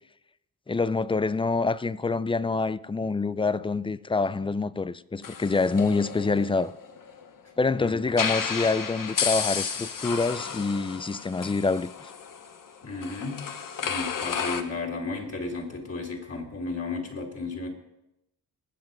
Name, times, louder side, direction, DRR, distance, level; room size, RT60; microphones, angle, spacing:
voice 1, 0.7-6.8 7.6-12.1, left 3 dB, 15° left, 0.4 m, -26 dB
sound 1, 5.2-7.3 8.1-14.6, left 6 dB, 55° left, 1.2 m, -32 dB
voice 2, 12.8-13.4 13.8-17.7, left 3 dB, 40° left, 3.3 m, -34 dB
20.0 x 7.5 x 5.2 m
cardioid pair, 80°, 39 cm